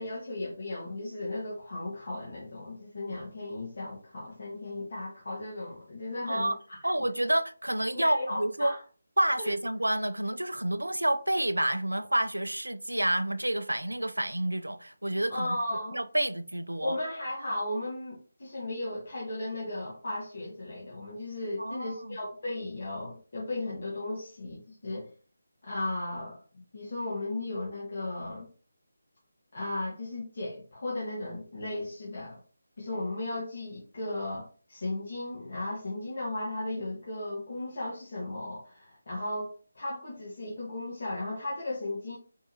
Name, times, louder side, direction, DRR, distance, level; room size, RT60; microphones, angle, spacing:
voice 1, 0.0-6.8 7.9-8.8 9.4-9.5 15.3-16.0 16.8-25.1 25.6-26.4 26.7-28.5 29.5-32.4 32.8-42.2, left 2 dB, 50° left, 1.4 m, -35 dB
voice 2, 6.3-6.6 6.8-8.7 9.2-15.6 15.9-17.0 21.6-22.2, right 1 dB, 85° right, 0.4 m, -29 dB
4.4 x 3.4 x 2.8 m
figure-of-eight pair, 155°, 0 cm